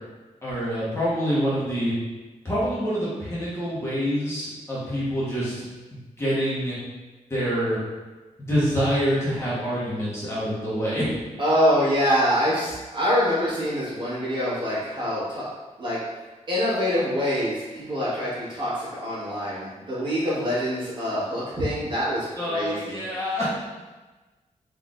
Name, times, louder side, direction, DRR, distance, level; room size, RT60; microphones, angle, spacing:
voice 1, 0.4-1.9 2.4-5.5 6.2-6.8 7.3-7.8 8.5-11.1 22.4-23.5, equal, 20° left, -9 dB, 1.0 m, -26 dB
voice 2, 11.4-15.4 15.8-16.0 16.5-23.0, equal, 40° right, -10 dB, 1.5 m, -25 dB
3.8 x 3.3 x 2.4 m, 1.2 s
wide cardioid pair, 160°, 13 cm